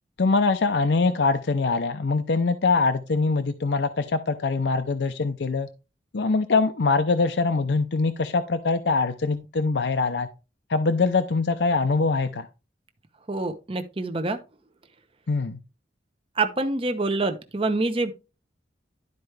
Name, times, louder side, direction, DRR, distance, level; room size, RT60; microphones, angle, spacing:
voice 1, 0.2-5.7 6.1-10.3 10.7-12.5 15.3-15.6, left 4 dB, 75° left, 0.6 m, -23 dB
voice 2, 13.3-14.4 16.4-18.1, right 2 dB, 30° right, 0.8 m, -26 dB
12.0 x 4.6 x 3.3 m
head